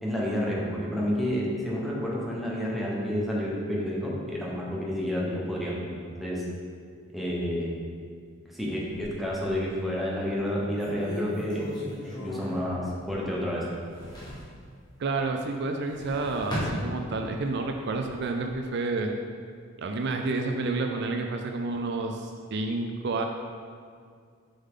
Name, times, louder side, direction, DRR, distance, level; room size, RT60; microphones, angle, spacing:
voice 1, 0.0-6.4 7.1-7.8 8.5-11.7 12.0-13.7, equal, ahead, -5 dB, 1.2 m, -30 dB
sound 1, 8.8-9.8 10.3-10.4 10.8-13.4 13.7-14.5 15.7-17.4 17.9-18.5, left 1 dB, 20° left, 1.6 m, -37 dB
voice 2, 15.0-19.1 19.8-23.3, right 3 dB, 60° right, 4 dB, 0.4 m, -30 dB
6.9 x 5.5 x 3.7 m, 2.1 s
head